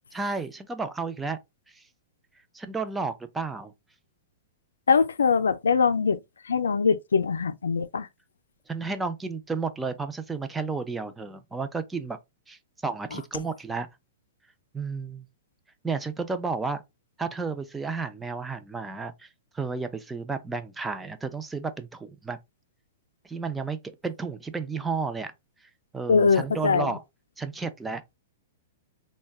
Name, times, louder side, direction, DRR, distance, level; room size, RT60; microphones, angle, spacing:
voice 1, 0.1-1.4 1.7-1.8 2.5-3.7 8.7-12.2 12.5-13.9 14.7-15.2 15.8-16.8 17.2-19.3 19.5-22.4 23.2-23.8 24.0-25.3 25.9-27.0 27.4-28.0, right 4 dB, 10° right, 0.4 m, -32 dB
voice 2, 4.9-6.2 6.4-8.1 13.1-13.2 26.1-26.9, left 5 dB, 90° left, 0.3 m, -22 dB
3.3 x 2.1 x 2.3 m
hypercardioid pair, 125°, 0 cm